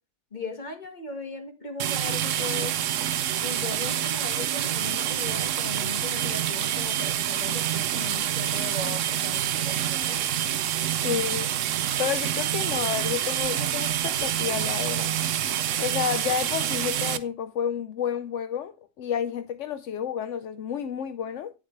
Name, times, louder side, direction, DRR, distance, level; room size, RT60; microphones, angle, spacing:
voice 1, 0.3-2.7 3.4-10.3 11.0-11.2, left 3 dB, 40° left, 1.9 m, -38 dB
sound 1, 1.8-17.2, right 11 dB, 90° right, 1.0 m, -27 dB
voice 2, 10.9-11.5 12.0-15.1 15.8-21.5, left 8 dB, 75° left, 1.0 m, -30 dB
9.8 x 6.8 x 3.2 m
omnidirectional pair, 1.3 m